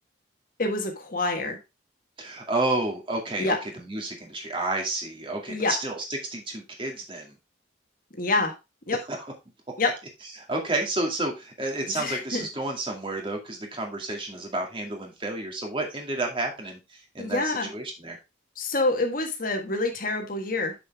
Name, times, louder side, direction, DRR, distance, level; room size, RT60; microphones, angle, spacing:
voice 1, 0.6-1.6 3.4-3.6 5.5-5.7 8.2-8.5 8.9-9.0 9.8-9.9 11.8-12.5 17.2-17.7 18.6-20.7, left 2 dB, 50° left, 3 dB, 1.5 m, -27 dB
voice 2, 2.2-6.0 6.3-7.3 9.1-9.2 10.4-18.2, right 2 dB, 30° right, 1 dB, 2.2 m, -31 dB
6.9 x 6.8 x 3.5 m, 0.25 s
head